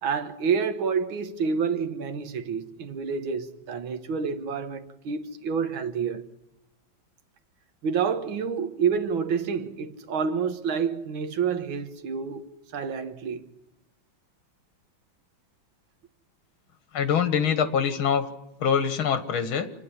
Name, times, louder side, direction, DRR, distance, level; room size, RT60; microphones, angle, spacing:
voice 1, 0.0-6.2 7.8-13.4, right 6 dB, 80° right, 2.1 m, -28 dB
voice 2, 16.9-18.3 18.6-19.7, left 7 dB, 85° left, 2.4 m, -24 dB
28.0 x 9.9 x 9.9 m
omnidirectional pair, 2.2 m